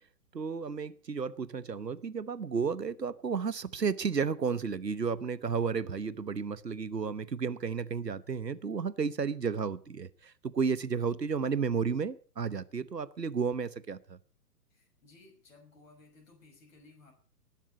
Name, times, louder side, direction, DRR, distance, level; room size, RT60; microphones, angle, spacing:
voice 1, 0.3-14.2, right 5 dB, 80° right, 1.2 m, -32 dB
voice 2, 14.7-17.1, left 3 dB, 55° left, 5.7 m, -58 dB
19.5 x 7.5 x 7.9 m
figure-of-eight pair, 125°, 48 cm